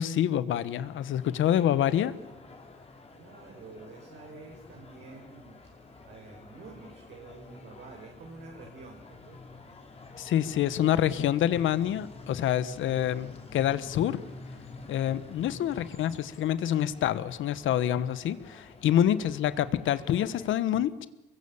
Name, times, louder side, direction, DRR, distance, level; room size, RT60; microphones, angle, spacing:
voice 1, 0.0-2.1 10.2-14.2 14.9-21.1, left 11 dB, 80° left, 15 dB, 1.2 m, -27 dB
sound 1, 0.8-20.5, left 3 dB, 30° left, 4.6 m, -49 dB
voice 2, 3.1-9.6 18.9-19.3, right 3 dB, 65° right, 0 dB, 5.2 m, -49 dB
24.0 x 22.5 x 7.2 m, 0.98 s
cardioid pair, 90°, 20 cm